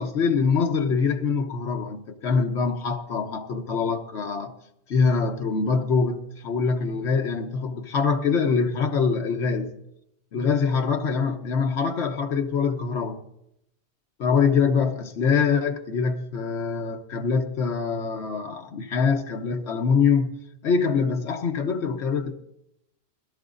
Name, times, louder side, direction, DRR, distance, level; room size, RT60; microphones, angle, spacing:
voice 1, 0.0-4.5 4.9-9.7 10.3-13.2 14.2-20.3 20.6-22.4, left 5 dB, 80° left, 1.2 m, -24 dB
21.0 x 12.5 x 2.5 m
omnidirectional pair, 1.1 m